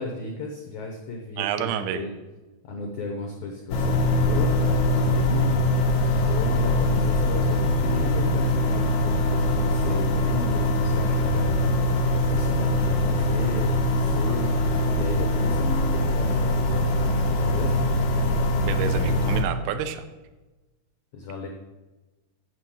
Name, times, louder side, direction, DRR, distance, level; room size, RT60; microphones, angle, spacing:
voice 1, 0.0-2.1 2.6-5.9 6.1-17.9 21.1-21.5, left 3 dB, 85° left, 2 dB, 1.6 m, -35 dB
voice 2, 1.4-2.1 18.6-20.1, right 9 dB, 80° right, 9 dB, 2.5 m, -29 dB
sound 1, 3.7-19.4, left 1 dB, 65° left, 2.0 m, -22 dB
8.3 x 7.3 x 7.6 m, 1.1 s
omnidirectional pair, 5.0 m